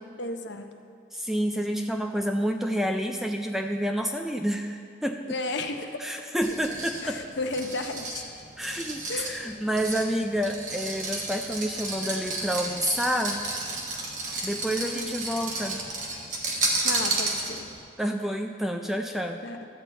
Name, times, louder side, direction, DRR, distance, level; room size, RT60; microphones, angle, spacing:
voice 1, 0.2-0.9 5.3-6.3 7.0-8.2 9.1-9.5 14.8-15.2 16.8-17.7 19.4-19.7, left 2 dB, 65° left, 5 dB, 0.7 m, -34 dB
voice 2, 1.1-5.2 6.0-7.2 8.6-13.4 14.4-15.8 18.0-19.4, equal, ahead, 4 dB, 0.3 m, -29 dB
sound 1, 6.4-17.8, right 2 dB, 40° right, 1.1 m, -32 dB
12.0 x 4.2 x 8.1 m, 2.3 s
head